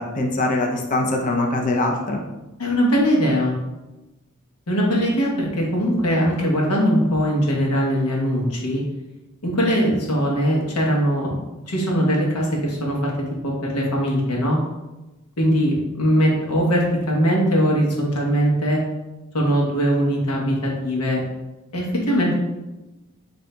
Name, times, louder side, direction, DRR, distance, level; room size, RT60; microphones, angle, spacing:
voice 1, 0.0-2.2, left 2 dB, 35° left, 1 dB, 0.5 m, -22 dB
voice 2, 2.6-3.5 4.7-8.8 9.4-11.3 11.7-13.1 13.4-14.6 15.4-18.8 19.3-21.2 21.7-22.3, equal, 90° left, -2 dB, 1.1 m, -20 dB
6.4 x 2.7 x 2.2 m, 1.0 s
head